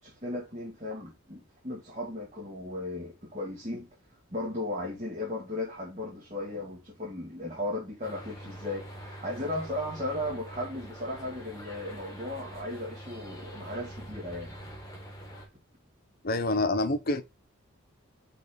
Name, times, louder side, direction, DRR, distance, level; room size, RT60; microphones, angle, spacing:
voice 1, 0.0-3.9 4.3-14.5, left 1 dB, 30° right, 2.3 m, -36 dB
sound 1, 8.0-15.5, equal, 15° left, 1.8 m, -44 dB
voice 2, 16.2-17.2, left 2 dB, 45° left, 0.9 m, -27 dB
5.9 x 4.0 x 5.3 m
head